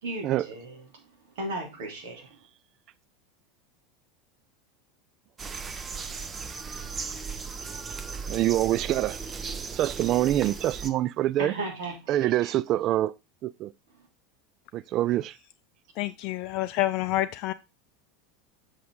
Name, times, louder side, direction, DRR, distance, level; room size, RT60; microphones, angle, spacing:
voice 1, 0.0-1.0 1.3-2.4 7.4-7.5 11.4-12.5, right 2 dB, 65° right, 3.3 m, -36 dB
sound 1, 5.4-10.9, right 5 dB, 25° right, 0.9 m, -36 dB
voice 2, 8.3-9.2 9.7-11.5 12.1-13.1 13.4-13.7 14.7-15.4, right 13 dB, 45° right, 0.3 m, -25 dB
voice 3, 16.0-17.5, left 16 dB, 50° left, 0.4 m, -28 dB
7.8 x 6.4 x 3.8 m
figure-of-eight pair, 80°, 0 cm